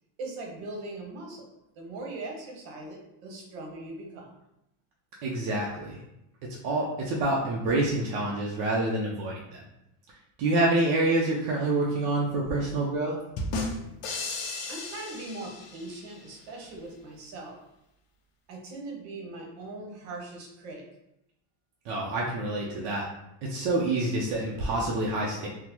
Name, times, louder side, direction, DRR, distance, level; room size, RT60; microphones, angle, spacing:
voice 1, 0.2-1.5 1.7-4.3 14.7-17.6 18.5-20.8, right 2 dB, 75° right, 0 dB, 1.1 m, -40 dB
voice 2, 5.2-6.0 6.4-9.6 10.1-13.2 21.8-23.1 23.4-25.5, right 2 dB, 60° right, -3 dB, 0.7 m, -27 dB
sound 1, 13.4-16.2, left 2 dB, 35° left, 0.5 m, -34 dB
3.7 x 2.1 x 2.9 m, 0.84 s
cardioid pair, 150°, 44 cm